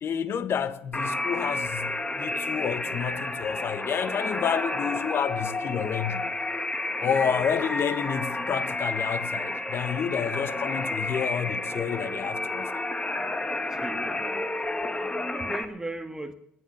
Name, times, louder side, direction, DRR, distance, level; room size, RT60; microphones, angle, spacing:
voice 1, 0.0-6.3 7.0-12.8, left 8 dB, 50° left, 1.2 m, -30 dB
sound 1, 0.9-15.6, left 2 dB, 20° left, 1.9 m, -31 dB
voice 2, 7.0-7.3 13.7-14.4 14.9-16.3, right 2 dB, 10° right, 1.5 m, -38 dB
18.0 x 11.0 x 6.6 m
hypercardioid pair, 65°, 5 cm